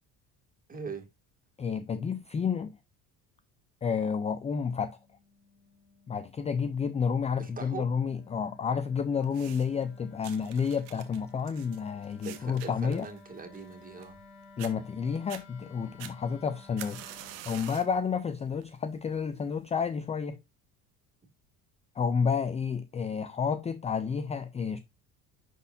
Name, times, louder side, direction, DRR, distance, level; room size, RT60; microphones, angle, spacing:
voice 1, 0.7-1.1 7.4-7.9 12.2-14.2, right 5 dB, 20° right, 2.1 m, -41 dB
voice 2, 1.6-2.8 3.8-5.0 6.1-13.1 14.6-20.4 22.0-24.8, left 6 dB, 20° left, 0.4 m, -30 dB
Wind instrument woodwind instrument, 4.5-17.4, left 3 dB, 60° left, 4.0 m, -55 dB
sound 1, 9.2-9.8 10.2-14.3 14.6-14.7 15.2-15.4 16.0-18.0 18.4-18.8 19.6-19.7, right 12 dB, 90° right, 1.3 m, -46 dB
11.0 x 4.1 x 2.6 m
cardioid pair, 120°, 38 cm